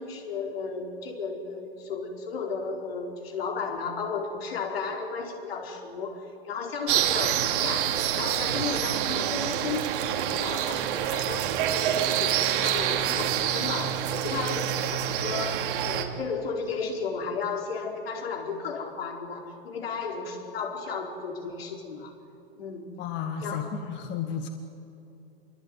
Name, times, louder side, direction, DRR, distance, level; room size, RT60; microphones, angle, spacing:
voice 1, 0.0-22.1 22.6-22.8 23.4-23.8, left 5 dB, 75° left, 1 dB, 4.7 m, -34 dB
sound 1, 6.9-16.0, right 10 dB, 60° right, 2.7 m, -27 dB
voice 2, 23.0-24.5, left 7 dB, 35° left, 6 dB, 1.9 m, -33 dB
26.0 x 23.0 x 9.4 m, 2.8 s
hypercardioid pair, 120°, 30 cm